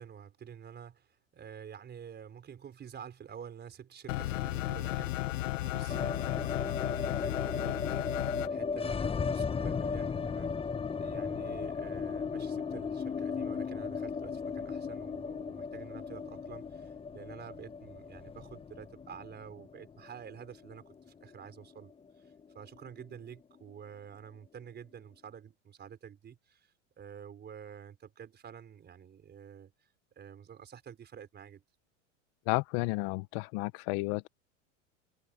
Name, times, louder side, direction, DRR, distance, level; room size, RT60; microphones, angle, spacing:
voice 1, 0.0-10.6 11.0-26.7 27.0-29.7 30.2-31.6, right 8 dB, 25° right, 4.6 m, -49 dB
sound 1, 4.1-8.5, left 16 dB, 85° left, 0.8 m, -34 dB
sound 2, 5.9-22.0 22.2-22.3 22.6-23.3, left 5 dB, 15° left, 1.1 m, -36 dB
voice 2, 32.5-34.3, left 25 dB, 55° left, 1.2 m, -32 dB
supercardioid pair, 120°, 38 cm